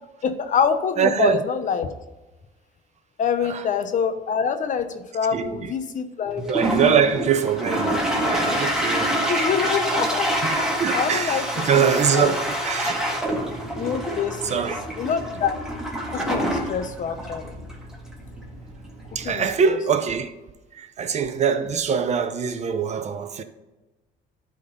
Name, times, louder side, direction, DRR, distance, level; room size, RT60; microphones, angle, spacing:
voice 1, 0.2-1.9 3.2-6.5 9.3-10.4 10.9-11.7 12.1-12.3 13.8-14.7 15.0-15.6 16.1-17.5 19.2-19.5, left 7 dB, 50° left, 0.9 m, -25 dB
voice 2, 1.0-1.4 3.4-3.6 5.3-5.7 6.4-9.2 10.4-10.5 10.8-13.0 13.3-13.4 14.4-14.8 19.1-20.3 20.7-23.4, right 7 dB, 40° right, 0.8 m, -23 dB
Toilet flush, 6.4-19.5, equal, 5° right, 1.8 m, -26 dB
11.5 x 3.9 x 5.4 m
cardioid pair, 110°, 17 cm